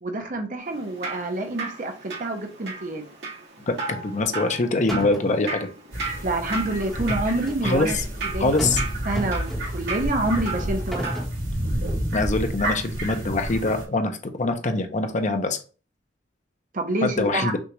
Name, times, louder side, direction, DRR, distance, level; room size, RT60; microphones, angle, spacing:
voice 1, 0.0-3.0 6.2-8.0 8.3-8.7 9.1-11.2 16.7-17.5, right 2 dB, 45° right, 0.8 m, -27 dB
Drip, 0.6-11.2, right 4 dB, 65° right, 2.0 m, -36 dB
voice 2, 3.7-5.7 7.6-8.0 8.4-8.8 12.1-15.6 17.0-17.6, left 2 dB, 40° left, 0.7 m, -24 dB
sound 1, 4.5-4.6 4.9-5.4 6.9-7.8 8.6-8.9 9.2-9.9 10.6-11.4, equal, ahead, 1.2 m, -32 dB
sound 2, 5.9-13.9, equal, 80° right, 2.5 m, -30 dB
6.1 x 2.5 x 3.0 m
head